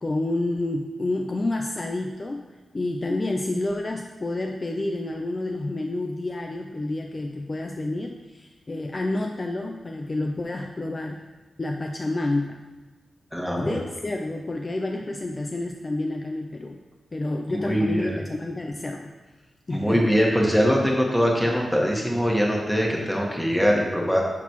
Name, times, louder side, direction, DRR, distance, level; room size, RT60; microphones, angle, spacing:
voice 1, 0.0-2.5 2.7-11.2 11.6-12.6 13.6-16.8 17.1-19.1 19.7-20.1, left 2 dB, 35° left, 2 dB, 0.4 m, -29 dB
voice 2, 13.3-13.8 17.5-18.2 19.7-24.2, equal, ahead, -2 dB, 1.5 m, -22 dB
11.5 x 4.1 x 3.1 m, 1.3 s
wide cardioid pair, 85°, 0 cm